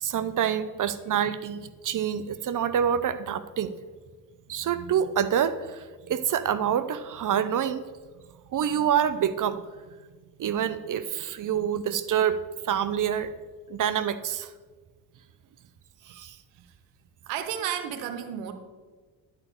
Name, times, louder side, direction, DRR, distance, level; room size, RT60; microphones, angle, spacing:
voice 1, 0.0-3.7 4.5-7.8 8.5-9.6 10.4-12.4 12.6-13.3 13.7-14.5 16.1-16.4, right 9 dB, 40° right, 13 dB, 0.7 m, -27 dB
voice 2, 17.3-18.5, right 9 dB, 70° right, 7 dB, 1.1 m, -32 dB
10.5 x 5.0 x 6.8 m, 1.4 s
hypercardioid pair, 45°, 49 cm